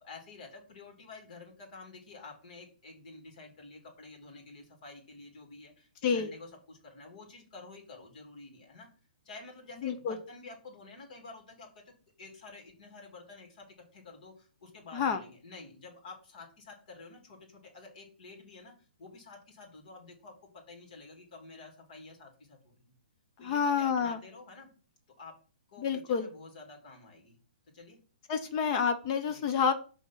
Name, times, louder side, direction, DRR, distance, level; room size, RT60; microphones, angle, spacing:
voice 1, 0.0-8.9 9.2-11.8 12.2-13.7 13.9-18.7 19.0-22.9 23.4-24.7 25.2-25.3 25.7-27.4 27.7-28.0 29.3-29.4, left 3 dB, 55° left, 2 dB, 2.8 m, -50 dB
voice 2, 9.8-10.2 14.9-15.2 23.4-24.2 25.8-26.3 28.3-29.7, left 6 dB, 35° left, 9 dB, 0.7 m, -28 dB
6.3 x 3.6 x 5.8 m, 0.39 s
hypercardioid pair, 135°, 5 cm